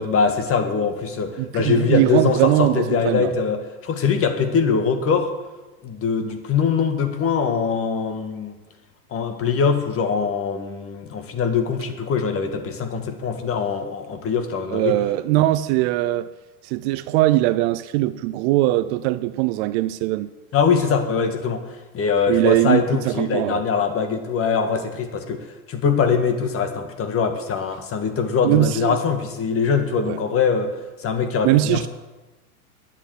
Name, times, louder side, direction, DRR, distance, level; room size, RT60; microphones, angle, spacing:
voice 1, 0.0-5.3 5.8-8.5 9.1-14.9 20.5-31.9, left 6 dB, 30° left, 1.7 m, -22 dB
voice 2, 1.4-3.3 14.7-16.3 16.6-20.3 22.3-23.6 28.4-29.0 30.0-30.2 31.4-31.9, right 16 dB, 50° right, 0.6 m, -20 dB
10.5 x 8.2 x 8.1 m
hypercardioid pair, 115°, 45 cm